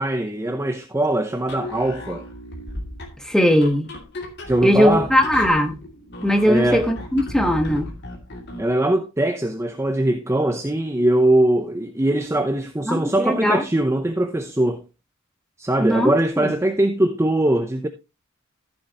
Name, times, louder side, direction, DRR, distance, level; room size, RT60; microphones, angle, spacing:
voice 1, 0.0-2.3 4.5-5.1 6.4-6.9 8.6-14.8 15.6-17.9, right 1 dB, 15° right, 0.7 m, -21 dB
sound 1, 1.4-8.7, left 1 dB, 55° left, 2.6 m, -36 dB
voice 2, 3.2-4.0 4.6-5.8 6.2-7.9 12.9-13.6 15.8-16.1 16.4-16.5, equal, 5° left, 1.3 m, -19 dB
14.0 x 7.2 x 2.9 m
head